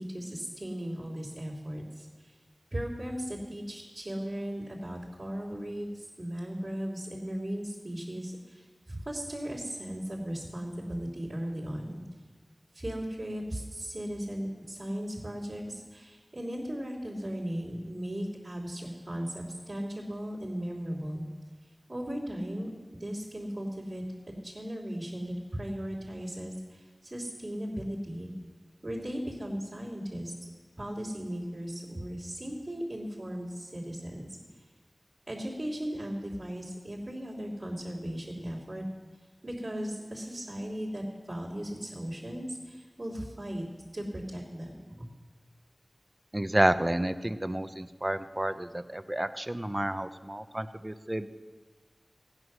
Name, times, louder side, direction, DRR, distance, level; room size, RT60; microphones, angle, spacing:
voice 1, 0.0-2.3 2.7-12.0 12.7-21.2 21.9-28.3 28.8-30.3 30.8-34.3 35.3-38.8 39.4-43.6 43.9-45.1, equal, 55° right, -8 dB, 3.1 m, -37 dB
voice 2, 46.3-51.3, right 1 dB, 25° right, 11 dB, 0.6 m, -30 dB
15.5 x 9.7 x 6.2 m, 1.4 s
wide cardioid pair, 55°, 0 cm